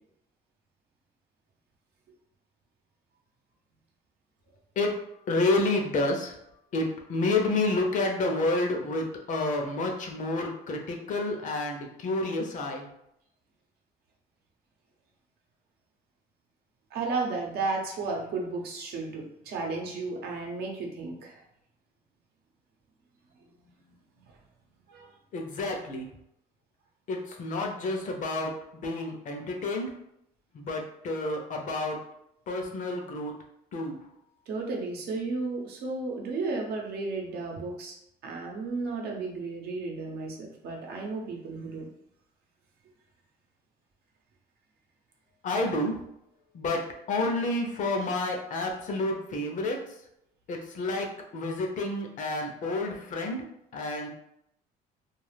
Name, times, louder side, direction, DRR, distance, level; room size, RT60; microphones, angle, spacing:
voice 1, 5.3-6.3 6.7-12.9 25.3-26.1 27.1-29.9 30.5-32.0 32.5-33.3 33.7-34.0 45.4-45.9 46.5-49.9 50.5-53.4 53.7-54.1, left 2 dB, 50° left, 2 dB, 0.6 m, -29 dB
voice 2, 16.9-21.4 23.6-24.0 24.9-25.1 34.5-37.9 38.2-41.9, right 3 dB, 70° right, 0 dB, 0.8 m, -33 dB
2.4 x 2.4 x 3.2 m, 0.77 s
cardioid pair, 110°, 17 cm